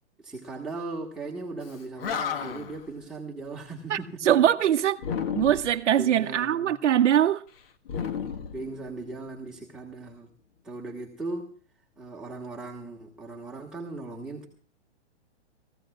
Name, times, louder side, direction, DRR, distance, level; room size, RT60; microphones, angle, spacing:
voice 1, 0.2-4.2 6.0-6.7 8.5-10.3 10.6-11.5 12.0-14.5, right 3 dB, ahead, 1.6 m, -38 dB
Animal, 1.7-1.8 2.0-2.8 5.0-5.8 7.9-9.2, left 7 dB, 55° left, 1.4 m, -32 dB
voice 2, 3.9-5.0 5.4-7.4, right 10 dB, 85° right, 0.7 m, -22 dB
28.5 x 15.0 x 2.3 m
hypercardioid pair, 140°, 34 cm